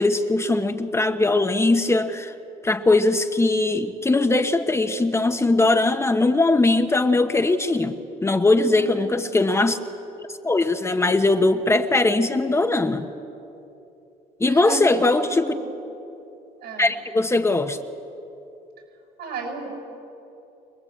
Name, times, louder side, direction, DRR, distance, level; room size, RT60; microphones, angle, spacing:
voice 1, 0.0-2.3 2.6-9.8 10.4-13.1 14.4-15.5 16.8-17.8, left 2 dB, 15° left, 7 dB, 1.0 m, -20 dB
voice 2, 8.7-9.4 14.5-15.7 16.6-16.9 19.2-19.7, right 3 dB, 75° right, 2 dB, 7.5 m, -34 dB
25.0 x 20.0 x 8.6 m, 2.8 s
cardioid pair, 110°, 17 cm